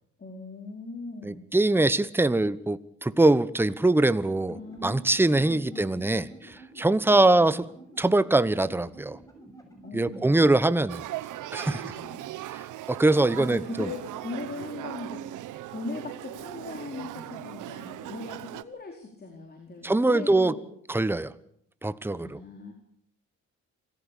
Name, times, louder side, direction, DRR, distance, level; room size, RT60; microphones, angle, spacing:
voice 1, 0.2-1.5 4.5-6.3 9.8-10.7 11.6-12.2 13.4-15.2 15.7-20.6 22.1-22.7, left 3 dB, 30° left, 2 dB, 4.6 m, -39 dB
voice 2, 1.2-7.6 8.0-9.2 9.9-11.0 11.5-11.8 12.9-13.9 19.8-20.5 20.9-21.3 21.8-22.4, right 2 dB, 5° right, 14 dB, 1.1 m, -23 dB
sound 1, 4.0-10.3, right 2 dB, 10° left, 7.1 m, -50 dB
Male speech man speaking / Child speech kid speaking / Conversation, 10.9-18.6, right 14 dB, 85° right, 1.1 m, -38 dB
26.5 x 15.0 x 8.5 m, 0.69 s
cardioid pair, 90°, 30 cm